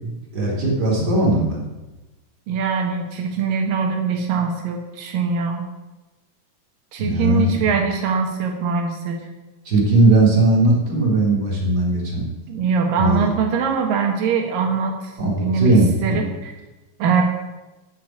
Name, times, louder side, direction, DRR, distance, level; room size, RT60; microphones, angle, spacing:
voice 1, 0.0-1.6 7.0-7.8 9.7-12.3 13.0-13.3 15.2-16.2, right 2 dB, 30° right, -3 dB, 3.6 m, -18 dB
voice 2, 2.5-5.6 6.9-9.2 12.5-15.1 15.4-15.7 16.0-16.5 17.0-17.2, right 5 dB, 80° right, 3 dB, 3.0 m, -22 dB
13.5 x 5.9 x 9.0 m, 1.1 s
omnidirectional pair, 3.9 m